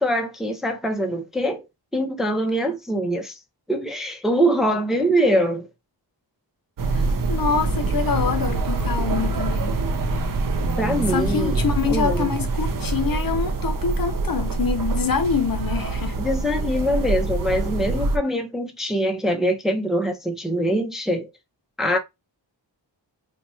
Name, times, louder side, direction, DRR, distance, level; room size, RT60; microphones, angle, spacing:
voice 1, 0.0-1.7 1.9-3.4 3.7-5.7 10.8-11.6 11.8-12.3 16.2-21.3 21.8-22.0, equal, ahead, 0.5 m, -23 dB
sound 1, 6.8-18.2, right 3 dB, 50° right, 0.5 m, -25 dB
voice 2, 6.9-9.8 11.1-16.2, left 6 dB, 50° left, 0.6 m, -25 dB
2.8 x 2.3 x 4.1 m
wide cardioid pair, 110°, 45 cm